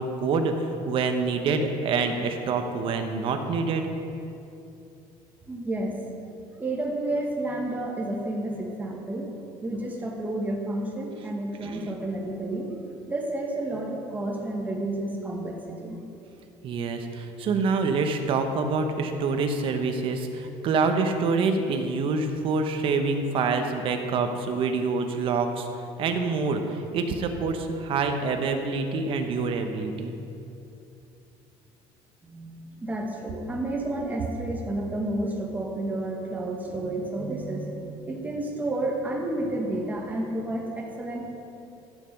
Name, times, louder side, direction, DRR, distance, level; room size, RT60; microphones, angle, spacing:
voice 1, 0.0-3.9 11.6-11.9 16.6-30.1, right 4 dB, 50° right, 5 dB, 1.1 m, -26 dB
voice 2, 5.5-6.0 6.6-9.3 9.6-12.7 13.1-16.0 32.2-41.2, right 1 dB, 15° right, -1 dB, 1.8 m, -31 dB
14.0 x 6.9 x 5.4 m, 2.7 s
cardioid pair, 125°, 11 cm